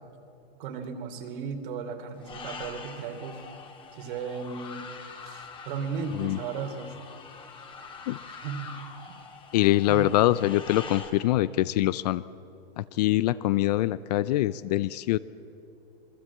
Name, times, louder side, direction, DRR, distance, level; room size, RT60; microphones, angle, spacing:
voice 1, 0.6-3.4 3.9-4.8 5.2-6.9 8.4-8.7 9.1-9.2 9.9-10.1, right 5 dB, 55° right, 6 dB, 3.2 m, -35 dB
sound 1, 2.2-11.1, left 5 dB, 15° left, 2.2 m, -44 dB
voice 2, 9.5-12.2 12.8-15.2, left 15 dB, 40° left, 17 dB, 0.5 m, -24 dB
26.5 x 21.0 x 8.5 m, 2.8 s
supercardioid pair, 155°, 30 cm